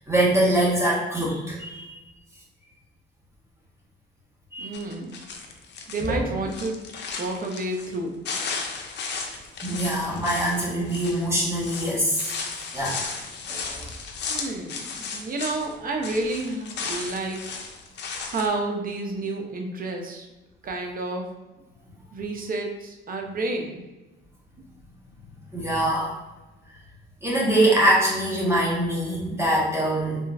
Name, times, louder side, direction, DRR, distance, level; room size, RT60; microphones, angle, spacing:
voice 1, 0.1-2.0 4.5-4.8 6.0-6.2 9.6-12.3 12.7-13.0 13.5-13.9 25.5-26.1 27.2-30.2, right 1 dB, 15° right, -6 dB, 1.4 m, -23 dB
voice 2, 4.6-5.1 5.9-6.8 7.2-8.1 14.3-17.5 18.3-20.3 20.6-21.2 22.1-23.8, right 2 dB, 45° right, 2 dB, 0.7 m, -30 dB
sound 1, 4.7-6.1 6.4-8.0 8.2-15.7 16.0-18.5, left 5 dB, 60° left, 0.6 m, -35 dB
3.8 x 3.0 x 2.5 m, 1.1 s
cardioid pair, 90°, 20 cm